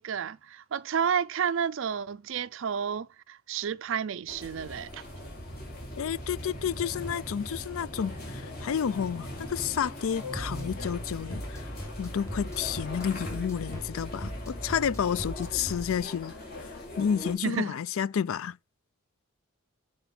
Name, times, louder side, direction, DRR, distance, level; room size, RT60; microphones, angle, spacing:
voice 1, 0.0-5.0 17.4-17.7, right 7 dB, 55° right, 0.4 m, -31 dB
sound 1, 4.3-17.3, left 1 dB, 40° left, 3.3 m, -40 dB
voice 2, 6.0-11.7 12.0-16.3 17.0-18.6, left 8 dB, 65° left, 0.4 m, -30 dB
sound 2, 10.3-16.0, equal, 15° left, 1.9 m, -39 dB
7.1 x 5.0 x 5.8 m
head